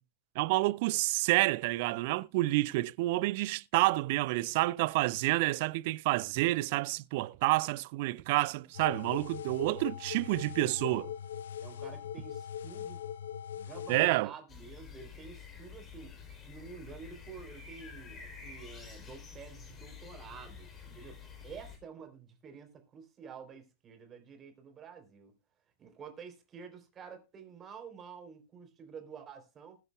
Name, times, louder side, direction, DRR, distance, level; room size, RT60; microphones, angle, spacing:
voice 1, 0.4-11.1 13.9-14.3, right 20 dB, 50° right, 0.5 m, -29 dB
sound 1, 8.7-14.1, left 9 dB, 60° left, 0.7 m, -41 dB
voice 2, 11.6-13.0 13.6-16.1 16.4-25.3 25.8-29.8, right 6 dB, 25° right, 3.5 m, -49 dB
sound 2, 14.5-21.8, left 6 dB, 25° left, 3.6 m, -49 dB
20.5 x 7.9 x 2.3 m
figure-of-eight pair, 90°, 0 cm